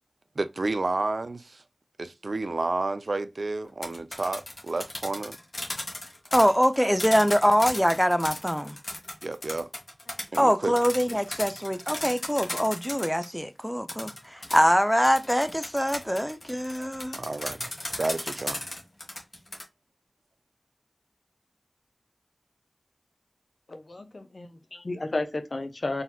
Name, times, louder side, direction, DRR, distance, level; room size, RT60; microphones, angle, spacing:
voice 1, 0.4-1.6 2.0-5.4 9.2-9.7 10.3-10.7 17.1-17.7 18.0-18.7, right 2 dB, 75° right, 0.5 m, -30 dB
sound 1, 3.7-13.3 13.9-19.6, left 1 dB, 55° left, 1.9 m, -36 dB
voice 2, 6.3-8.8 10.4-17.2, equal, ahead, 0.6 m, -24 dB
voice 3, 23.7-26.0, left 2 dB, 70° left, 0.9 m, -33 dB
4.2 x 4.1 x 2.4 m
wide cardioid pair, 45°, 0 cm